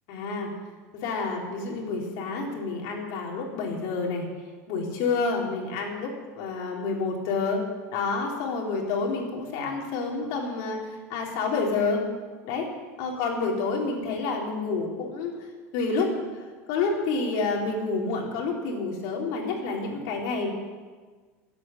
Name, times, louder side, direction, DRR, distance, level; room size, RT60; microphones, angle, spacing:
voice 1, 0.1-0.5 1.0-4.3 4.7-7.6 7.9-12.0 12.5-12.7 13.0-15.3 15.7-16.1 16.7-20.5, left 4 dB, 60° left, -1 dB, 3.7 m, -28 dB
13.5 x 8.5 x 9.2 m, 1.4 s
supercardioid pair, 145°, 8 cm